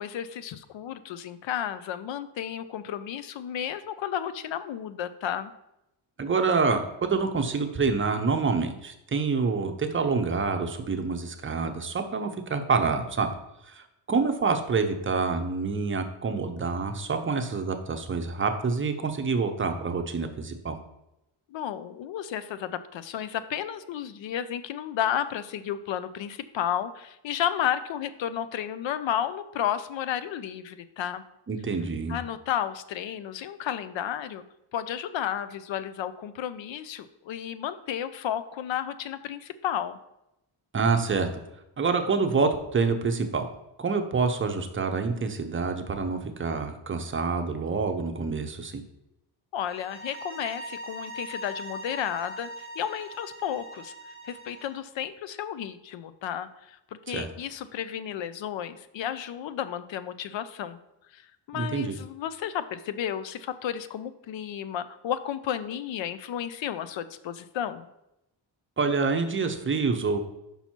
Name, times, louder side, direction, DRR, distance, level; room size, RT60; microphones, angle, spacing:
voice 1, 0.0-5.5 21.5-31.2 32.1-34.4 34.7-40.0 49.5-52.5 52.8-53.9 54.2-60.8 61.1-67.9, left 10 dB, 75° left, 13 dB, 0.6 m, -32 dB
voice 2, 6.2-13.3 13.6-20.8 31.5-32.1 40.7-41.3 41.8-43.5 43.8-48.8 57.1-57.3 61.5-61.9 68.8-70.2, right 4 dB, 25° right, 6 dB, 0.5 m, -27 dB
sound 1, 49.6-54.8, right 1 dB, 20° left, 1.5 m, -41 dB
5.8 x 5.5 x 4.4 m, 0.88 s
wide cardioid pair, 170°, 45 cm